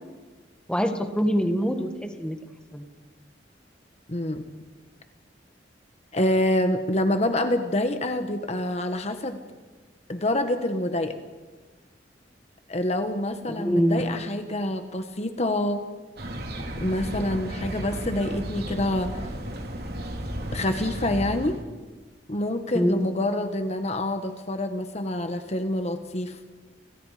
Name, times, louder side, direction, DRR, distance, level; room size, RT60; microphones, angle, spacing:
voice 1, 0.7-1.9 2.2-2.4 2.7-2.9 13.6-14.0 22.7-23.1, equal, 5° left, 6 dB, 1.9 m, -24 dB
voice 2, 4.1-4.5 6.1-9.4 10.1-11.2 12.7-15.9 16.8-19.3 20.5-21.6 22.3-26.4, left 1 dB, 40° left, 7 dB, 1.4 m, -26 dB
sound 1, 16.2-21.6, equal, 60° right, 3.3 m, -34 dB
30.0 x 25.0 x 5.0 m, 1.3 s
head